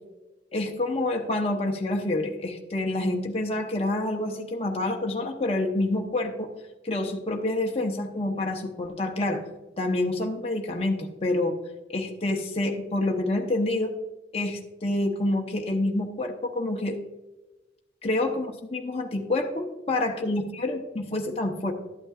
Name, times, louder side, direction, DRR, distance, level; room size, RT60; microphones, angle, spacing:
voice 1, 0.5-6.5 6.8-9.4 9.8-11.6 11.9-13.9 14.3-17.0 18.0-21.7, left 2 dB, 35° left, 1 dB, 0.8 m, -27 dB
12.5 x 8.5 x 2.4 m, 1.1 s
head